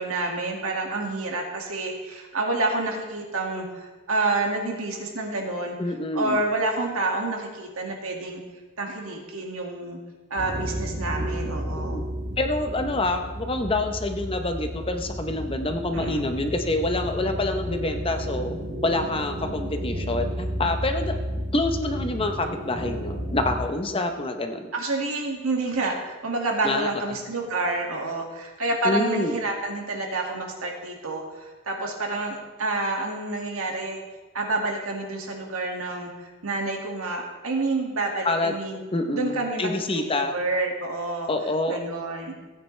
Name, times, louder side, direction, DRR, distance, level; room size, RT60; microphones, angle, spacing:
voice 1, 0.0-5.8 6.1-8.4 8.8-10.0 10.3-12.1 15.9-16.3 24.7-34.0 34.3-38.8 39.1-41.3 41.7-42.3, right 2 dB, 75° right, 1 dB, 2.0 m, -28 dB
voice 2, 5.8-6.4 11.7-12.0 12.4-18.5 18.8-21.2 21.5-24.7 26.6-26.9 28.8-29.3 38.2-38.6 38.9-40.4 41.3-41.8, left 2 dB, 25° left, 6 dB, 0.7 m, -27 dB
sound 1, 10.4-23.6, equal, 35° right, 1.7 m, -32 dB
16.0 x 9.3 x 3.2 m, 1.3 s
head